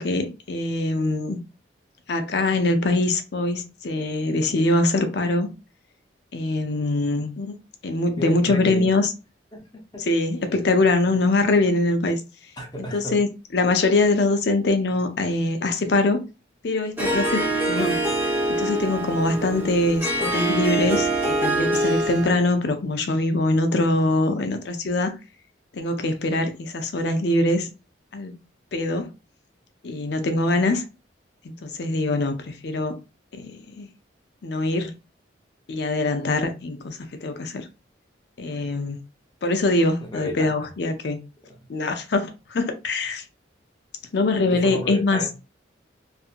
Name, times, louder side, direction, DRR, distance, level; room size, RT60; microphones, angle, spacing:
voice 1, 0.0-1.4 2.1-5.5 6.3-7.5 7.8-9.1 10.0-12.2 12.9-16.2 16.6-18.0 18.6-25.1 25.7-27.7 28.1-28.3 28.7-29.1 29.8-30.8 31.4-33.0 33.3-33.9 34.4-34.9 35.7-37.7 38.4-39.0 39.4-41.2 41.7-43.2 44.1-45.2, left 2 dB, 60° left, 0.5 m, -23 dB
voice 2, 8.2-8.9 9.5-9.6 9.9-10.1 12.6-13.2 40.1-40.5 44.5-45.3, left 1 dB, 20° left, 0.7 m, -32 dB
Harp, 17.0-22.4, right 2 dB, 10° right, 0.6 m, -24 dB
2.7 x 2.5 x 2.4 m
head